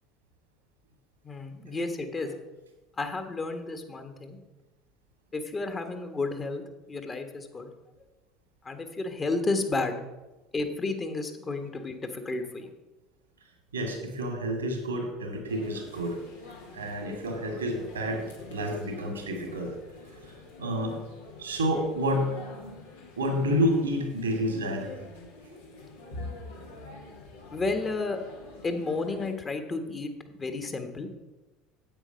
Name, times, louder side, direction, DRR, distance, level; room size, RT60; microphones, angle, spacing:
voice 1, 1.2-2.3 3.0-4.4 5.3-6.6 6.9-7.7 8.6-10.0 10.5-12.7 27.5-28.2 28.6-31.1, left 3 dB, 30° left, 6 dB, 1.5 m, -32 dB
voice 2, 13.7-16.2 16.5-18.2 18.5-19.7 20.6-20.9 21.4-22.4 23.2-24.9, equal, 90° right, 3 dB, 2.1 m, -29 dB
sound 1, 15.5-29.3, left 3 dB, 80° left, 1.8 m, -46 dB
8.9 x 8.3 x 5.2 m, 1.1 s
hypercardioid pair, 65°, 0 cm